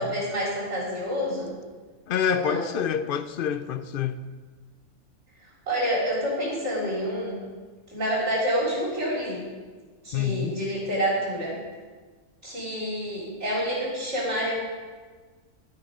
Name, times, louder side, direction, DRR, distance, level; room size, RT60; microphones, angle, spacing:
voice 1, 0.0-1.5 2.3-2.7 5.7-7.4 7.9-9.4 10.0-11.5 12.4-14.6, equal, 60° right, 4.3 m, -28 dB
voice 2, 2.1-4.2 10.1-10.6, left 8 dB, 60° left, 0.6 m, -27 dB
11.5 x 9.3 x 5.0 m
omnidirectional pair, 1.4 m